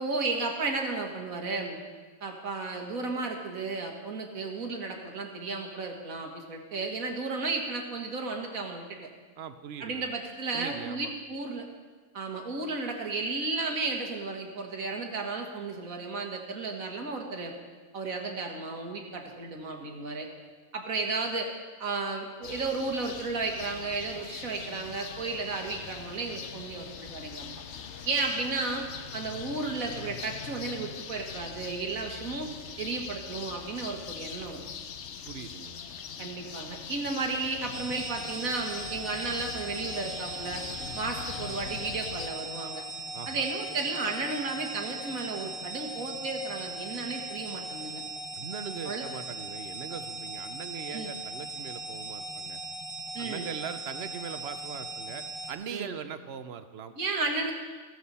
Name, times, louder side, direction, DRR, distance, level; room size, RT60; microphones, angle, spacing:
voice 1, 0.0-1.8 2.2-9.0 9.8-11.7 12.1-17.5 17.9-20.3 20.7-21.5 21.8-27.5 28.0-28.9 29.1-32.5 32.8-34.6 36.2-40.6 40.9-42.8 43.3-48.0 48.9-49.0 50.9-51.1 53.1-53.5 55.7-55.9 57.0-57.5, right 3 dB, 85° right, 2 dB, 2.1 m, -33 dB
voice 2, 9.4-10.1 10.5-11.1 35.3-35.8 43.1-43.5 48.3-52.6 53.2-56.9, right 7 dB, 55° right, 11 dB, 0.8 m, -40 dB
sound 1, 22.4-42.3, left 7 dB, 60° left, 1.0 m, -42 dB
sound 2, 37.7-55.5, right 2 dB, 20° left, 1.0 m, -39 dB
14.5 x 14.0 x 4.2 m, 1.4 s
omnidirectional pair, 1.4 m